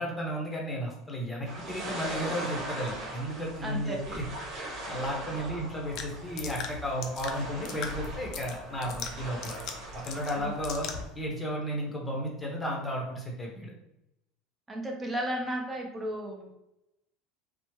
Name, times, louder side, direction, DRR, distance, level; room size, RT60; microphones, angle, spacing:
voice 1, 0.0-4.3 4.8-9.6 10.1-10.9 11.1-13.7, equal, 10° left, -1 dB, 1.0 m, -33 dB
sound 1, 1.4-11.0, right 1 dB, 55° right, 1.1 m, -40 dB
voice 2, 3.6-4.0 10.4-10.5 14.7-16.5, right 1 dB, 15° right, 1 dB, 0.7 m, -34 dB
sound 2, 5.9-11.1, left 6 dB, 55° left, 0.5 m, -41 dB
3.1 x 2.1 x 3.1 m, 0.88 s
supercardioid pair, 125°, 0 cm